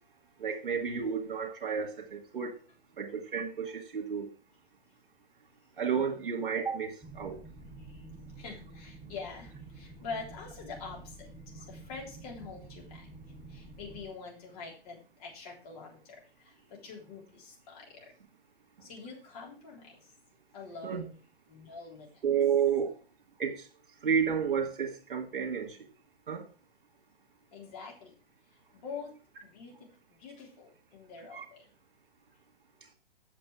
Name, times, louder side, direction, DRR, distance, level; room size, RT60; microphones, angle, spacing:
voice 1, 0.4-2.6 3.0-4.3 5.8-7.4 20.8-21.0 22.2-22.9 23.4-23.6 24.0-25.7 26.3-26.4 31.3-31.4, right 7 dB, 55° right, 3 dB, 2.2 m, -31 dB
sound 1, 7.0-14.1, right 2 dB, 5° right, 0.8 m, -49 dB
voice 2, 8.4-11.3 11.5-13.1 13.5-18.1 18.8-20.1 20.5-21.2 21.5-22.2 27.5-28.1 28.7-29.1 29.4-29.9 30.2-31.6, left 5 dB, 40° left, -2 dB, 3.8 m, -45 dB
8.6 x 6.5 x 4.8 m, 0.36 s
figure-of-eight pair, 120°, 30 cm